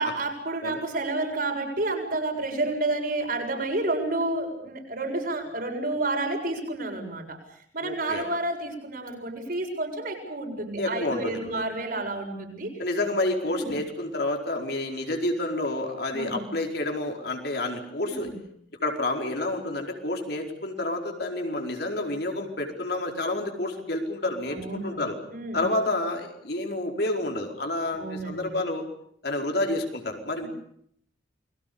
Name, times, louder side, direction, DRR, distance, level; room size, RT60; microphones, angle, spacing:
voice 1, 0.0-7.4 7.7-12.7 13.5-13.7 16.1-16.5 18.0-18.4 24.5-25.0 25.3-25.6 27.9-28.5 30.4-30.5, right 2 dB, 50° right, 2 dB, 7.4 m, -30 dB
voice 2, 7.8-8.3 10.8-11.6 12.8-18.3 18.8-25.2 25.5-28.8 29.2-30.5, left 2 dB, 60° left, 3 dB, 4.7 m, -29 dB
29.5 x 22.5 x 7.0 m, 0.68 s
head